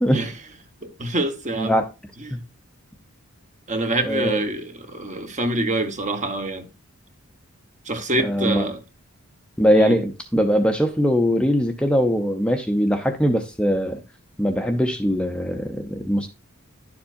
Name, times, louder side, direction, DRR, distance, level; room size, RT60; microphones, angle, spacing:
voice 1, 0.8-1.8 2.2-2.4 3.7-6.7 7.9-8.8 9.8-10.0, right 2 dB, 35° right, 1.2 m, -26 dB
voice 2, 1.6-1.9 2.3-2.4 4.0-4.4 8.2-8.7 9.6-14.0 14.4-16.3, equal, 5° left, 0.7 m, -21 dB
11.0 x 7.1 x 2.6 m
head